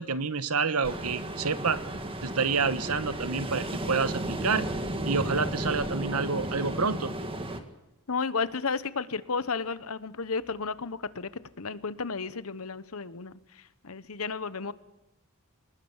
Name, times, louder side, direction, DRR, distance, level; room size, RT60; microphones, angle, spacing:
voice 1, 0.0-1.8 2.2-4.7 5.0-7.1, right 4 dB, 85° right, 13 dB, 1.3 m, -28 dB
Ocean, 0.8-7.6, right 1 dB, 25° right, 2.0 m, -34 dB
voice 2, 8.1-11.3 11.6-14.7, left 4 dB, 75° left, 15 dB, 1.1 m, -33 dB
26.0 x 19.5 x 7.4 m, 0.91 s
head